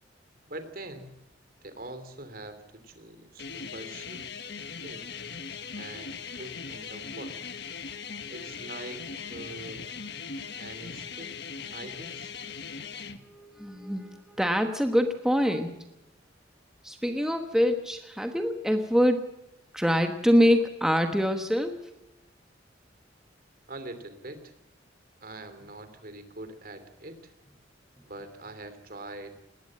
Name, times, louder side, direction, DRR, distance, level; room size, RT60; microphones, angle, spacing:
voice 1, 0.5-1.1 1.6-4.3 4.8-5.0 5.7-7.3 8.3-9.9 10.6-11.4 11.7-12.3 23.7-24.5 25.2-27.3 28.0-29.4, right 2 dB, 50° right, 10 dB, 2.9 m, -43 dB
sound 1, 3.4-13.2, left 6 dB, 60° left, 1.4 m, -39 dB
voice 2, 13.2-15.8 16.8-19.2 19.7-21.9, equal, 5° right, 5 dB, 1.2 m, -25 dB
20.0 x 18.5 x 7.6 m, 0.90 s
head